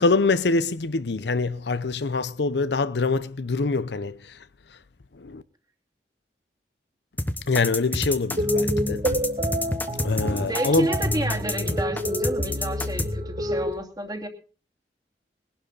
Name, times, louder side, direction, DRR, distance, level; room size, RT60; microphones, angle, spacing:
voice 1, 0.0-4.4 4.7-4.8 5.1-5.4 7.5-9.2 9.9-10.9, left 3 dB, 80° left, 0.7 m, -25 dB
sound 1, 7.2-13.1, left 1 dB, 10° left, 1.0 m, -28 dB
sound 2, 8.4-13.7, equal, 35° right, 3.1 m, -27 dB
voice 2, 10.4-14.3, right 1 dB, 20° right, 2.5 m, -30 dB
20.5 x 11.5 x 4.0 m
head